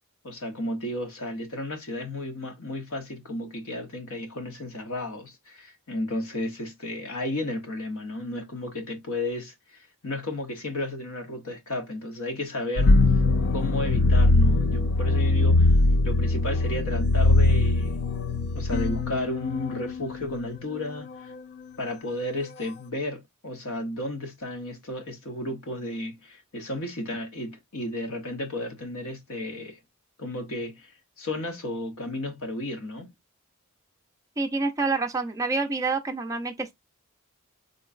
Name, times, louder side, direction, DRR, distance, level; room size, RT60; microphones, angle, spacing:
voice 1, 0.2-13.0 13.5-15.7 16.0-18.1 18.5-21.3 21.8-29.8 30.2-30.9 31.2-33.1, left 1 dB, 65° left, 1.0 m, -33 dB
sound 1, 12.8-20.4, left 2 dB, 50° left, 0.3 m, -21 dB
voice 2, 34.4-36.7, right 3 dB, 15° right, 0.4 m, -27 dB
3.9 x 2.9 x 2.4 m
head